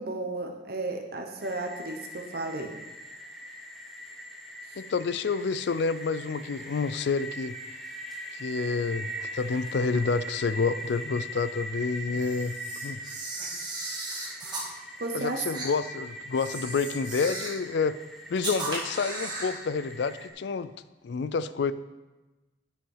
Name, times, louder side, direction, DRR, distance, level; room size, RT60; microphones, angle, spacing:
voice 1, 0.0-2.7 15.0-15.4, right 2 dB, 55° right, 3 dB, 0.9 m, -33 dB
sound 1, 1.4-20.3, equal, ahead, 1.0 m, -41 dB
voice 2, 4.8-7.6 8.3-12.5 12.8-13.0 15.1-18.0 18.3-20.7 21.0-21.7, left 4 dB, 65° left, 15 dB, 0.4 m, -29 dB
Camera, 12.1-14.7 15.5-15.7 16.3-17.6 18.4-19.6, right 2 dB, 25° right, 2.1 m, -36 dB
10.0 x 5.7 x 5.5 m, 1.1 s
head